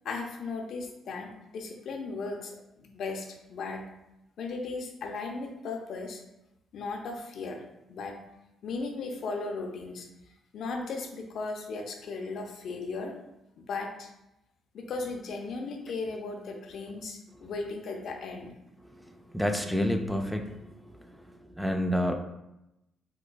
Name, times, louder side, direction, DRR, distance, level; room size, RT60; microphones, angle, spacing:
voice 1, 0.0-2.5 2.8-3.8 4.4-6.2 6.7-7.6 7.9-8.2 8.6-10.1 10.5-13.2 13.6-14.1 14.7-18.5, left 3 dB, 70° left, 2 dB, 0.5 m, -36 dB
voice 2, 19.3-20.7 21.0-21.1 21.6-22.2, equal, ahead, 4 dB, 0.3 m, -28 dB
4.6 x 2.2 x 2.2 m, 0.88 s
cardioid pair, 90°, 0 cm